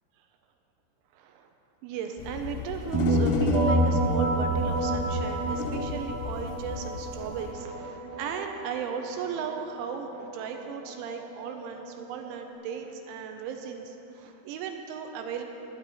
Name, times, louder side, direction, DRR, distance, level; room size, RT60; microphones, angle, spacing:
voice 1, 1.1-1.5 1.8-15.4, right 7 dB, 85° right, 4 dB, 3.2 m, -36 dB
sound 1, 2.2-7.5, left 9 dB, 80° left, 2.5 m, -35 dB
sound 2, 2.9-12.5, right 2 dB, 55° right, 2.7 m, -29 dB
20.0 x 9.9 x 4.2 m, 2.9 s
omnidirectional pair, 5.2 m